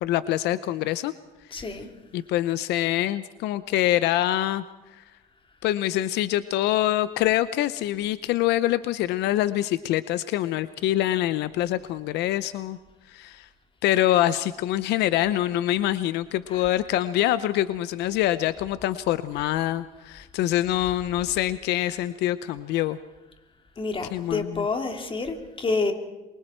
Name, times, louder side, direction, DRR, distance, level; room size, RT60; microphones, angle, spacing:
voice 1, 0.0-1.1 1.5-1.7 2.1-4.6 4.9-5.0 5.6-12.8 13.1-13.5 13.8-23.0 24.1-24.6, left 14 dB, 85° left, 14 dB, 0.7 m, -25 dB
voice 2, 1.5-1.9 16.5-16.7 19.3-19.5 23.8-25.9, left 3 dB, 30° left, 5 dB, 3.1 m, -29 dB
27.5 x 23.5 x 4.5 m, 1.1 s
cardioid pair, 110°, 17 cm